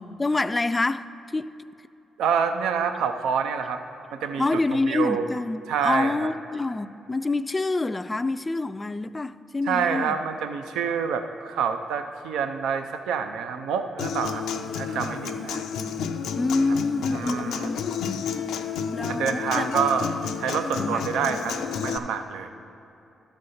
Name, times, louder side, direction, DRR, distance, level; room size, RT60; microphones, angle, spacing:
voice 1, 0.0-1.5 4.4-10.2 16.3-17.8 18.1-18.3 18.9-19.8 20.8-21.4, left 3 dB, 25° left, 13 dB, 0.3 m, -27 dB
voice 2, 2.2-3.8 4.1-4.4 4.9-5.3 5.7-6.1 9.7-15.6 17.1-17.7 19.1-20.1 20.4-21.6 21.8-22.5, right 7 dB, 90° right, 7 dB, 0.4 m, -27 dB
Human voice / Acoustic guitar, 14.0-22.0, left 6 dB, 85° left, 0.4 m, -31 dB
12.5 x 4.2 x 6.4 m, 2.8 s
cardioid pair, 70°, 0 cm